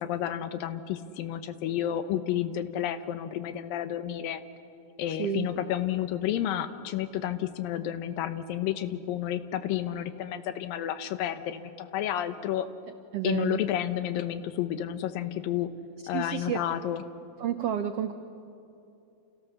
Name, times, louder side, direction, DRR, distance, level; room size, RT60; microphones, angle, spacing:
voice 1, 0.0-4.4 5.0-12.7 13.2-15.7 16.1-17.0, left 11 dB, 85° left, 10 dB, 2.8 m, -31 dB
voice 2, 13.1-13.6 16.1-16.6 17.4-18.1, right 10 dB, 85° right, 8 dB, 1.3 m, -30 dB
30.0 x 28.0 x 7.0 m, 2.7 s
omnidirectional pair, 4.0 m